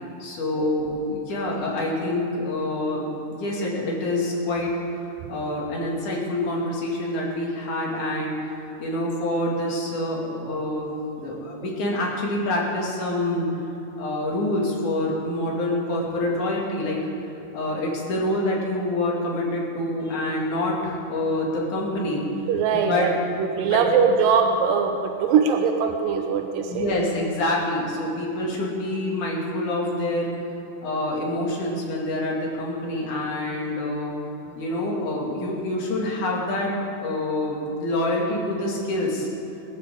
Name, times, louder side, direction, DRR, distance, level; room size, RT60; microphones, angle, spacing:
voice 1, 0.2-4.7 5.3-13.5 14.0-17.0 17.5-22.2 22.7-23.1 23.7-24.0 26.7-30.3 30.8-34.1 34.6-36.7 37.0-39.3, left 1 dB, 65° left, -3 dB, 3.9 m, -26 dB
voice 2, 22.5-23.1 23.4-27.0, right 6 dB, 90° right, 4 dB, 2.5 m, -21 dB
22.0 x 13.0 x 3.8 m, 3.0 s
omnidirectional pair, 3.8 m